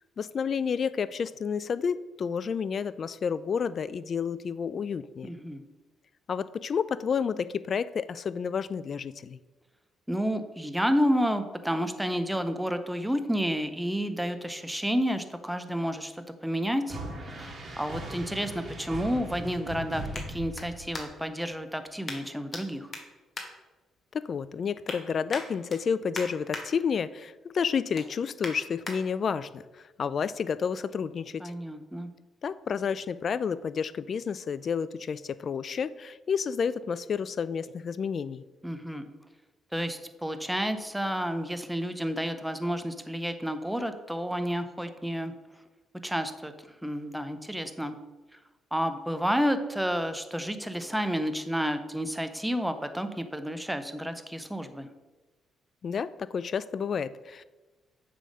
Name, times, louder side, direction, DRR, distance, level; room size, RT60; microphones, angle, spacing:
voice 1, 0.2-5.3 6.3-9.4 24.1-31.5 32.4-38.4 55.8-57.4, left 6 dB, 50° left, 16 dB, 0.3 m, -30 dB
voice 2, 5.2-5.6 10.1-22.9 31.4-32.1 38.6-39.1 39.7-45.3 46.0-47.9 48.7-54.9, equal, 5° right, 9 dB, 0.7 m, -30 dB
sound 1, 16.9-21.2, right 1 dB, 45° right, 1.6 m, -39 dB
sound 2, 20.1-21.4 22.0-22.6 22.9-24.2 24.6-25.0 25.3-26.6 27.1-27.3 27.7-29.0 29.5-29.6, left 3 dB, 35° left, 1.5 m, -41 dB
7.6 x 3.5 x 6.3 m, 1.2 s
cardioid pair, 90°, 0 cm